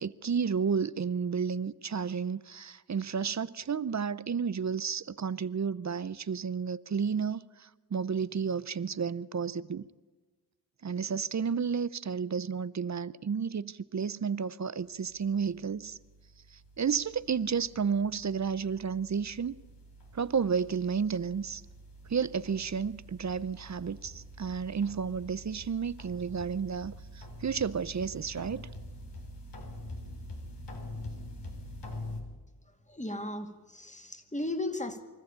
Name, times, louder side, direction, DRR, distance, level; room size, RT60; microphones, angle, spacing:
voice 1, 0.0-9.9 10.8-16.0 16.5-19.5 20.1-21.6 22.1-28.7, right 6 dB, 45° right, 0.6 m, -32 dB
sound 1, 14.8-32.2, left 1 dB, 85° left, 3.7 m, -46 dB
voice 2, 32.9-35.0, left 2 dB, 15° left, 2.2 m, -36 dB
24.5 x 14.0 x 8.8 m
wide cardioid pair, 75°, 40 cm